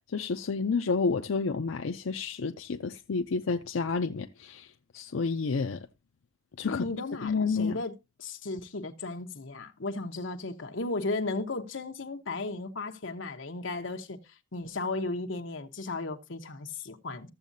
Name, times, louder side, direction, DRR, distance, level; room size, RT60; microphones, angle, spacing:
voice 1, 0.0-5.9 6.6-6.8 7.2-7.8, left 4 dB, 90° left, 0.5 m, -30 dB
voice 2, 6.6-7.9 8.2-14.2 14.5-17.3, left 3 dB, 70° left, 1.0 m, -35 dB
14.0 x 7.3 x 2.7 m
head